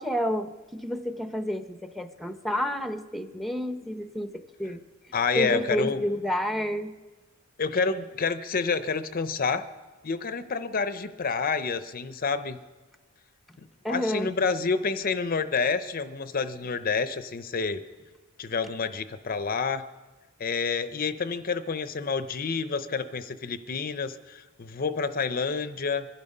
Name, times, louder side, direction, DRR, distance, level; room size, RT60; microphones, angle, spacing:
voice 1, 0.0-4.8 5.4-6.9 13.8-14.3, equal, ahead, 8 dB, 0.7 m, -30 dB
voice 2, 5.1-6.0 7.6-9.7 10.0-12.6 13.9-17.8 18.4-19.9 20.4-26.1, left 5 dB, 45° left, 11 dB, 0.6 m, -28 dB
24.5 x 11.0 x 5.4 m, 1.3 s
head